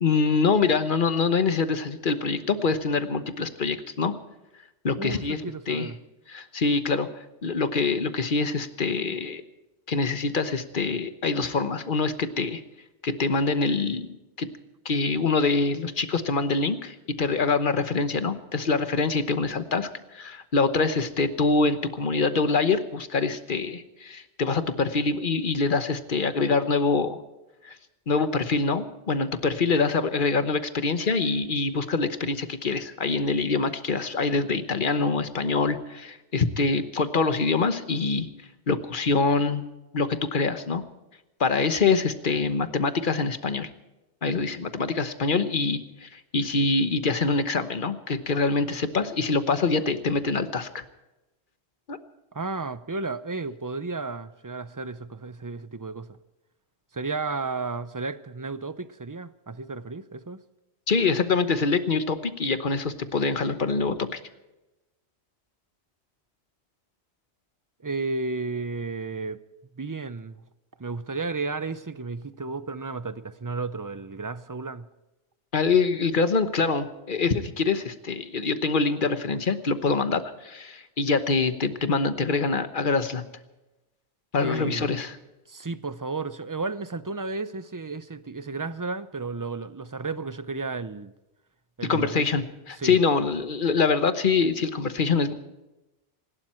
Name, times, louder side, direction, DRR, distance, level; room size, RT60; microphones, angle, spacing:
voice 1, 0.0-4.2 4.8-5.9 6.3-7.1 7.4-9.4 9.9-12.6 13.0-14.1 14.4-14.5 14.8-27.2 27.6-27.8 28.1-38.3 38.7-39.6 39.9-40.8 41.4-43.7 44.2-50.8 51.9-52.0 60.9-64.2 75.5-83.2 84.3-85.2 91.8-95.3, left 4 dB, 50° left, 1.2 m, -25 dB
voice 2, 5.0-6.0 52.3-56.2 56.9-60.4 67.8-69.4 69.8-70.4 70.8-74.9 84.4-84.9 85.5-91.1 91.8-92.4 92.8-93.0, right 3 dB, 25° right, 0.4 m, -33 dB
26.5 x 12.0 x 4.4 m
omnidirectional pair, 1.2 m